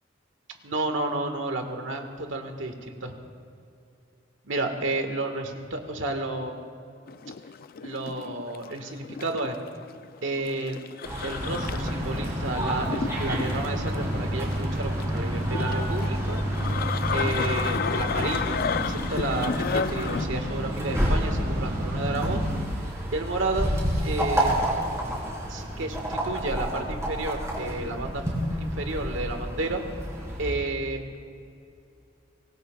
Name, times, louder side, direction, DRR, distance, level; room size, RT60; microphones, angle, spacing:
voice 1, 0.6-3.2 4.4-6.6 7.8-9.6 10.2-10.8 11.2-16.4 17.1-22.4 23.1-23.7 24.0-24.6 25.5-28.2 28.5-29.8 30.4-31.2, right 2 dB, 90° right, 5 dB, 1.7 m, -31 dB
sound 1, 7.1-20.3, left 6 dB, 50° left, 0.4 m, -33 dB
sound 2, 11.0-30.5, equal, 15° right, 3.9 m, -31 dB
sound 3, 11.4-22.6, equal, 55° right, 3.1 m, -31 dB
25.0 x 18.5 x 2.4 m, 2.6 s
head